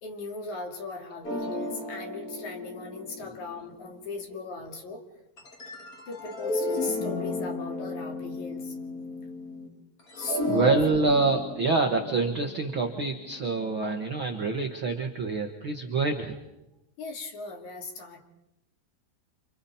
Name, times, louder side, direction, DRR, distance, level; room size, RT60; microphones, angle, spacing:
voice 1, 0.0-5.0 6.1-8.7 10.2-10.9 17.0-18.2, left 3 dB, 50° left, 2 dB, 3.4 m, -37 dB
sound 1, 1.2-4.4 5.4-9.7 10.0-14.2, left 2 dB, 30° left, 2.1 m, -35 dB
voice 2, 10.5-16.4, right 3 dB, 80° right, 4 dB, 1.1 m, -26 dB
29.0 x 26.5 x 4.3 m, 0.92 s
omnidirectional pair, 4.7 m